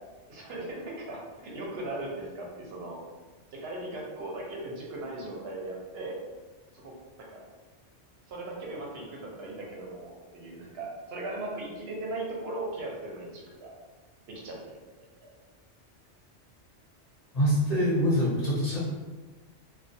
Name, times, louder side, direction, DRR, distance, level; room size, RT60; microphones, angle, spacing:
voice 1, 0.3-3.0 3.5-6.2 6.7-7.4 8.3-13.7 14.3-15.3, right 2 dB, 65° right, -2 dB, 0.7 m, -38 dB
voice 2, 17.3-18.8, equal, 40° left, -7 dB, 0.6 m, -24 dB
2.3 x 2.1 x 2.6 m, 1.3 s
omnidirectional pair, 1.2 m